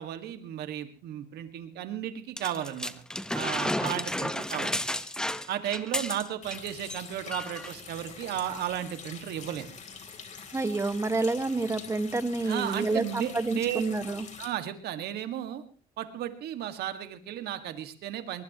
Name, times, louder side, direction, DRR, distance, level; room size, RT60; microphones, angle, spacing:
voice 1, 0.0-2.9 3.3-4.7 5.5-9.7 12.4-13.8 14.4-15.6 16.0-18.4, right 11 dB, 75° right, 8 dB, 2.0 m, -34 dB
sound 1, 2.4-6.6 6.8-7.0 7.3-7.7 8.5-8.6, left 1 dB, 5° left, 1.1 m, -32 dB
Water tap faucet, 6.4-14.5, left 6 dB, 45° left, 3.8 m, -45 dB
voice 2, 10.5-14.3, right 3 dB, 15° right, 9 dB, 1.8 m, -29 dB
23.5 x 20.0 x 3.1 m, 0.38 s
cardioid pair, 110°, 17 cm